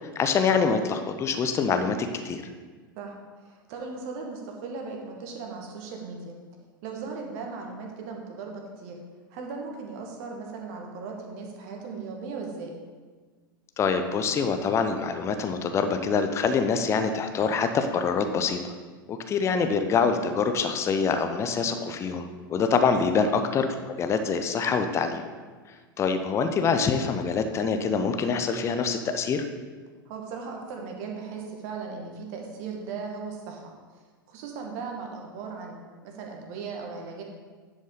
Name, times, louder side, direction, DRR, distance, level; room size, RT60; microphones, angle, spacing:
voice 1, 0.2-2.0 2.2-2.4 13.8-18.7 19.1-23.7 24.0-25.2 26.0-29.4, left 5 dB, 25° left, 8 dB, 0.6 m, -25 dB
voice 2, 3.0-6.4 6.8-8.9 9.3-12.8 23.2-23.4 30.1-33.7 34.3-37.2, right 4 dB, 50° right, 1 dB, 1.4 m, -37 dB
10.0 x 5.2 x 3.8 m, 1.4 s
figure-of-eight pair, 85°, 12 cm